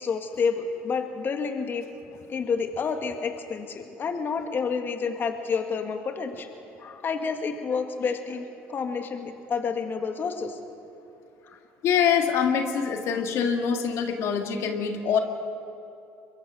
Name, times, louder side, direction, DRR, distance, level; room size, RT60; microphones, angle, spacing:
voice 1, 0.0-1.9 2.3-6.5 6.8-8.4 8.7-10.6 11.4-11.6, left 5 dB, 40° left, 6 dB, 1.7 m, -29 dB
voice 2, 11.8-15.2, left 7 dB, 65° left, 5 dB, 1.8 m, -24 dB
23.5 x 22.0 x 6.2 m, 2.8 s
supercardioid pair, 85°, 5 cm